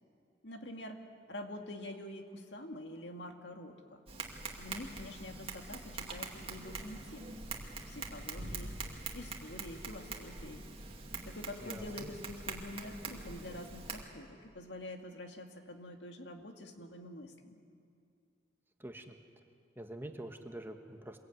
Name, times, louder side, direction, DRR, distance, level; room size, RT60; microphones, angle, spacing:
voice 1, 0.4-1.0 1.3-4.0 4.6-7.5 7.9-8.7 9.1-10.7 11.2-17.6, left 1 dB, 70° left, 4 dB, 2.2 m, -46 dB
Tap, 4.1-14.0, right 3 dB, 30° right, 2.4 m, -44 dB
voice 2, 11.6-12.1 18.8-19.1 19.8-21.2, right 1 dB, 10° right, 4 dB, 1.4 m, -46 dB
26.0 x 21.5 x 9.4 m, 2.4 s
head